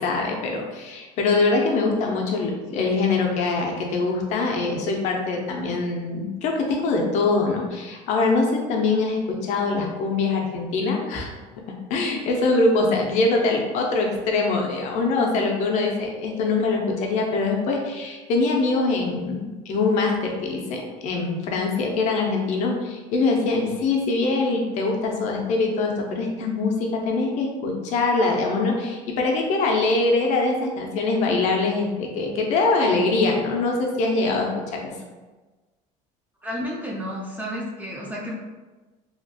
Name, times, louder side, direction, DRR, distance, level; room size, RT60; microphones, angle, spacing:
voice 1, 0.0-11.3 11.9-34.9, left 3 dB, 50° left, 1 dB, 0.5 m, -23 dB
voice 2, 36.4-38.3, equal, 10° right, -4 dB, 0.4 m, -31 dB
2.8 x 2.4 x 2.6 m, 1.2 s
cardioid pair, 160°, 15 cm